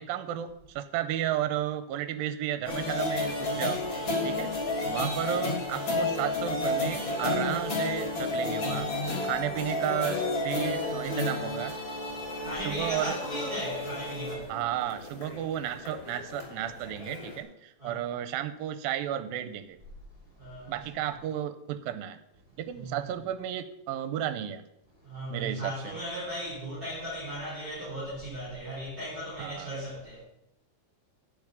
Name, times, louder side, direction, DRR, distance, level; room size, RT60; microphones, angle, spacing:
voice 1, 0.0-3.8 4.2-4.5 4.9-8.9 9.2-11.7 12.7-13.2 14.5-19.8 20.7-22.2 22.6-24.6 25.3-26.0 29.4-29.7, right 11 dB, 85° right, 2.4 m, -33 dB
sound 1, 2.7-17.4, left 2 dB, 35° left, 3.2 m, -32 dB
voice 2, 12.4-14.5 17.8-18.0 20.3-20.8 22.5-23.0 25.0-30.2, equal, 15° right, 4.5 m, -37 dB
10.5 x 5.5 x 8.6 m
omnidirectional pair, 4.2 m